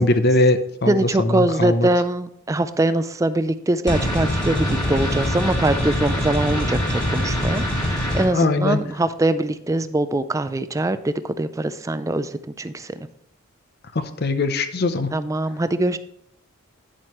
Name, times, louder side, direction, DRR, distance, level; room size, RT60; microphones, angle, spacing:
voice 1, 0.0-1.9 8.3-8.8 13.9-15.2, left 2 dB, 50° left, 10 dB, 0.7 m, -21 dB
voice 2, 0.9-13.1 15.1-16.0, right 2 dB, 15° right, 13 dB, 0.3 m, -23 dB
sound 1, 3.9-8.3, equal, 20° left, 2.9 m, -23 dB
10.0 x 7.6 x 3.1 m, 0.71 s
head